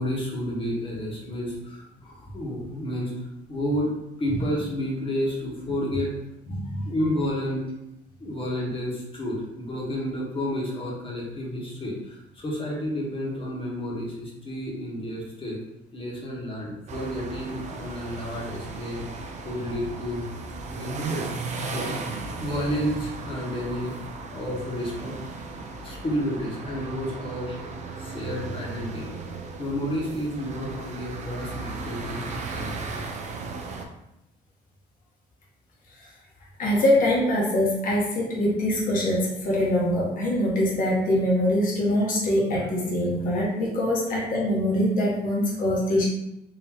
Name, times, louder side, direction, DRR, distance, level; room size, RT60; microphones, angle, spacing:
voice 1, 0.0-3.9 4.2-6.1 6.8-7.6 8.2-15.6 15.9-19.0 19.4-20.2 20.7-21.3 21.7-21.9 22.4-24.0 24.3-25.2 25.8-27.6 28.0-29.1 29.6-33.1 42.6-42.7, equal, 30° left, -4 dB, 1.4 m, -31 dB
sound 1, 16.9-33.9, right 3 dB, 45° right, 0.6 m, -36 dB
voice 2, 36.6-46.0, left 1 dB, 55° left, -4 dB, 1.3 m, -23 dB
3.9 x 2.9 x 3.0 m, 0.85 s
cardioid pair, 110°, 17 cm